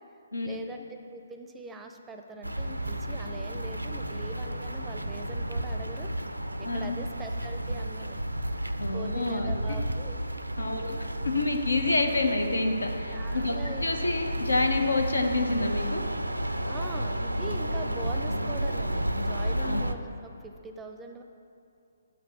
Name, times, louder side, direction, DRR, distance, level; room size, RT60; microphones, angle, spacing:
voice 1, 0.4-6.3 6.6-8.2 8.9-10.2 10.6-11.0 13.1-13.8 16.7-21.2, right 2 dB, 10° right, 5 dB, 0.5 m, -42 dB
sound 1, 2.4-19.9, right 1 dB, 90° right, 0.4 m, -32 dB
voice 2, 6.6-7.0 8.8-9.8 10.6-10.9 11.3-16.0 19.6-19.8, left 2 dB, 80° left, 4 dB, 1.0 m, -28 dB
7.5 x 5.8 x 6.9 m, 2.6 s
figure-of-eight pair, 135°, 0 cm